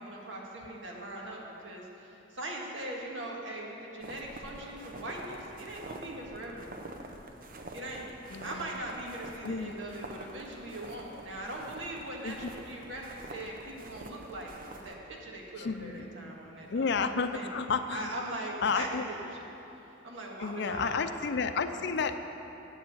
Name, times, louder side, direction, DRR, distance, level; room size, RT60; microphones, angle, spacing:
voice 1, 0.0-6.7 7.7-8.0 8.4-16.9 17.3-17.5 17.9-19.6 20.0-21.0 21.5-21.6, right 1 dB, 75° right, -2 dB, 1.7 m, -41 dB
sound 1, 4.0-15.0, right 2 dB, 50° right, 0.8 m, -47 dB
voice 2, 8.3-8.7 9.4-9.8 12.2-12.5 15.6-16.1 16.7-18.1 18.6-19.0 20.4-22.2, left 5 dB, 60° left, 9 dB, 0.5 m, -31 dB
8.4 x 7.0 x 7.9 m, 2.9 s
head